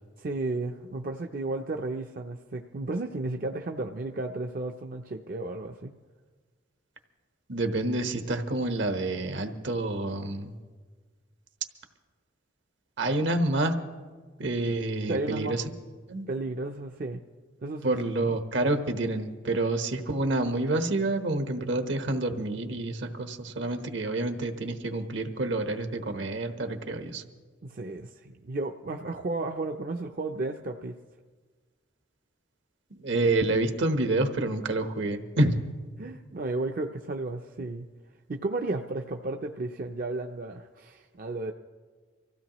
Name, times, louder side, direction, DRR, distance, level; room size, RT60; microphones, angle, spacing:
voice 1, 0.2-5.9 15.1-15.6 16.3-17.2 17.6-18.0 27.6-30.9 36.0-37.9 38.3-41.5, right 2 dB, 50° right, 3 dB, 0.5 m, -33 dB
voice 2, 7.5-10.5 13.0-13.8 14.4-15.6 16.1-16.2 17.8-27.2 33.0-35.7, right 2 dB, 70° right, 7 dB, 1.1 m, -28 dB
24.5 x 15.5 x 3.0 m, 1.4 s
head